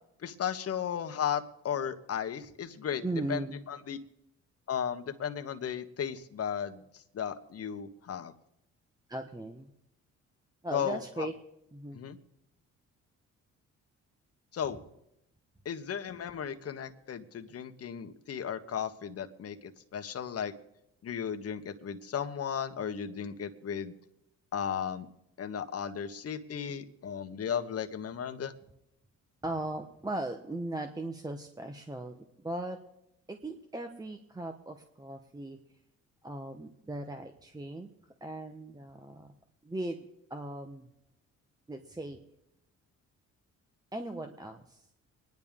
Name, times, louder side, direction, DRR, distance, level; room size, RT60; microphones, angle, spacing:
voice 1, 0.2-3.0 3.3-4.0 4.7-8.3 10.7-11.3 11.9-12.2 14.5-14.8 15.6-20.5 21.0-23.9 24.5-25.1 25.4-28.5, left 8 dB, 50° left, 7 dB, 1.3 m, -35 dB
voice 2, 3.0-3.6 9.1-9.7 10.6-11.3 11.7-12.0 29.4-32.8 33.3-35.6 36.2-37.9 38.2-39.3 39.6-40.9 41.7-42.2 43.9-44.8, right 2 dB, 10° right, 5 dB, 1.0 m, -38 dB
25.5 x 10.5 x 3.7 m, 0.81 s
cardioid pair, 90°, 30 cm